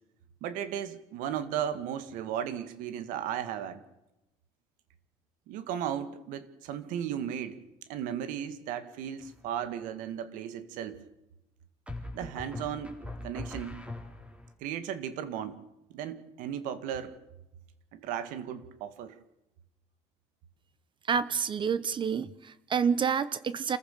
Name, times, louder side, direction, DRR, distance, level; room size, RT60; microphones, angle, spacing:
voice 1, 0.4-3.8 5.5-7.6 7.9-11.0 12.1-13.8 14.6-15.6 15.9-17.2 17.9-19.2, right 9 dB, 80° right, 12 dB, 2.0 m, -35 dB
sound 1, 9.2-9.7 11.9-14.5, left 2 dB, 10° right, 4.0 m, -42 dB
voice 2, 21.1-23.8, right 6 dB, 35° right, 16 dB, 1.0 m, -28 dB
28.0 x 15.0 x 6.8 m, 0.92 s
cardioid pair, 105°, 13 cm